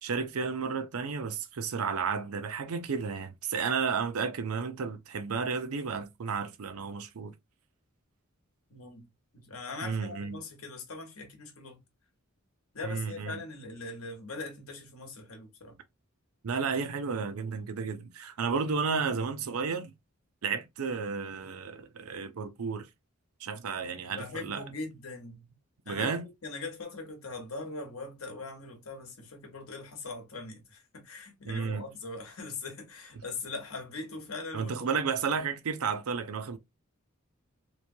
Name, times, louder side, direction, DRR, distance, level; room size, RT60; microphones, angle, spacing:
voice 1, 0.0-7.3 9.8-10.4 12.8-13.4 16.4-19.9 20.4-22.9 23.4-24.6 25.9-26.2 31.4-31.9 34.5-36.6, right 5 dB, 90° right, 0.5 m, -32 dB
voice 2, 8.7-9.1 9.3-11.8 12.7-15.8 24.1-25.5 25.9-34.7, left 3 dB, 80° left, 1.1 m, -41 dB
3.0 x 2.2 x 2.6 m
head